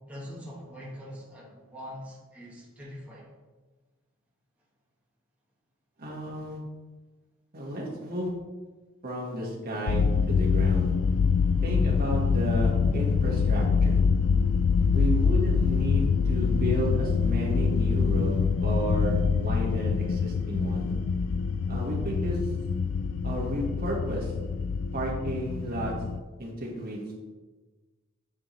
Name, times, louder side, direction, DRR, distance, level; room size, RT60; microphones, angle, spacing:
voice 1, 0.1-3.3 14.8-14.9, equal, 5° right, -6 dB, 1.5 m, -43 dB
voice 2, 6.0-6.6 7.5-8.3 9.0-10.9 11.6-14.0 14.9-20.9 21.7-22.4 23.2-24.3 24.9-25.9 26.4-27.2, right 1 dB, 45° right, -4 dB, 1.8 m, -32 dB
sound 1, 9.9-26.2, left 5 dB, 85° left, 0.4 m, -25 dB
9.6 x 4.7 x 3.3 m, 1.3 s
head